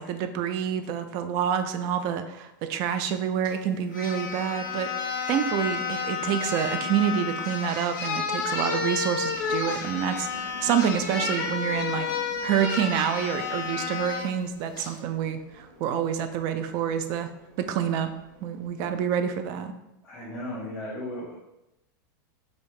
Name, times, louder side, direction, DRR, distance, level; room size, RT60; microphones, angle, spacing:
voice 1, 0.0-12.1 12.4-17.3 17.6-18.1 18.4-19.7, right 8 dB, 35° right, 8 dB, 0.4 m, -28 dB
sound 1, 3.4-3.5 3.9-14.3 14.8-14.9, left 5 dB, 65° left, 1.1 m, -31 dB
sound 2, 9.2-18.7, equal, 55° right, 1.1 m, -49 dB
voice 2, 20.0-21.4, left 1 dB, 10° left, -9 dB, 0.8 m, -36 dB
4.8 x 2.7 x 3.2 m, 0.90 s
supercardioid pair, 160°, 11 cm